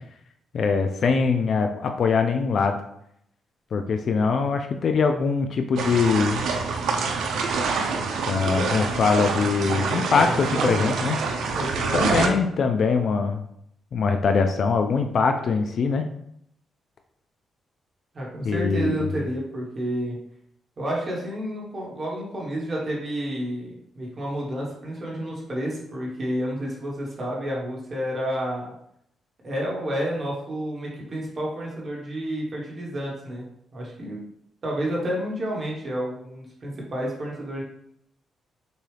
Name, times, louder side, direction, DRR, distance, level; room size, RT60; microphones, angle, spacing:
voice 1, 0.5-2.8 3.7-6.5 8.3-11.2 11.9-13.4 13.9-16.0 18.4-19.1, left 5 dB, 45° left, 5 dB, 0.3 m, -22 dB
sound 1, 5.8-12.3, right 4 dB, 80° right, 0.6 m, -26 dB
voice 2, 10.0-10.8 11.5-12.4 18.1-20.2 20.8-28.7 29.4-33.5 33.7-34.2 34.6-37.6, equal, 30° right, -3 dB, 1.2 m, -30 dB
6.6 x 2.3 x 3.3 m, 0.74 s
cardioid pair, 165°, 0 cm